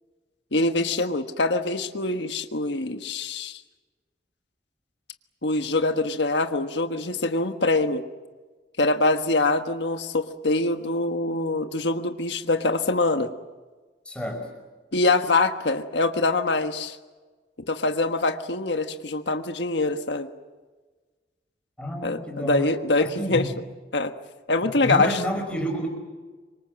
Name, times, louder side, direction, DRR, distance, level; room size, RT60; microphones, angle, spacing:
voice 1, 0.5-3.6 5.4-8.0 8.8-13.3 14.9-17.0 17.7-20.3 22.0-23.5 23.9-24.1 24.5-25.2, left 2 dB, 85° left, 7 dB, 1.4 m, -24 dB
voice 2, 14.1-14.5 21.8-23.5 24.8-25.9, equal, 5° left, 2 dB, 5.6 m, -29 dB
27.0 x 25.0 x 7.6 m, 1.3 s
head